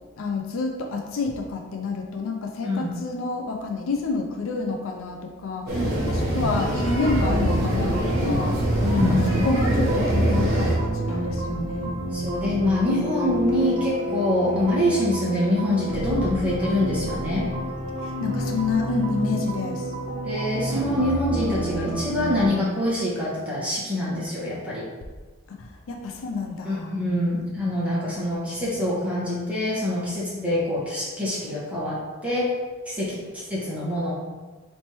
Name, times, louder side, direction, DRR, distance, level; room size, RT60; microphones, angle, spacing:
voice 1, 0.2-12.0 18.0-19.9 25.5-26.9, left 3 dB, 65° left, 3 dB, 0.4 m, -29 dB
voice 2, 2.6-2.9 6.3-6.5 8.8-9.5 11.8-17.5 20.2-24.8 26.6-32.5 32.8-34.1, left 1 dB, 5° right, -8 dB, 1.2 m, -25 dB
sound 1, 5.7-10.7, right 1 dB, 50° right, 1.1 m, -24 dB
sound 2, 7.0-22.5, right 1 dB, 85° right, 0.9 m, -29 dB
4.2 x 3.2 x 2.9 m, 1.3 s
head